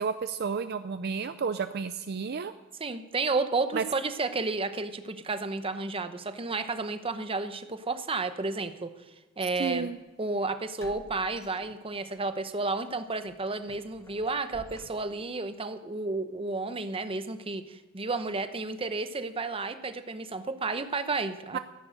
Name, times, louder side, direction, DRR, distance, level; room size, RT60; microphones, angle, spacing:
voice 1, 0.0-2.5 3.7-3.8 9.6-10.0 21.5-21.6, right 5 dB, 50° right, 11 dB, 0.5 m, -31 dB
voice 2, 2.8-8.9 9.4-9.9 10.2-21.6, right 3 dB, 25° right, 10 dB, 0.9 m, -32 dB
sound 1, 9.7-9.8 10.8-12.2 12.6-12.8 13.3-15.4, left 1 dB, 15° left, 1.0 m, -52 dB
14.0 x 10.5 x 6.5 m, 1.2 s
head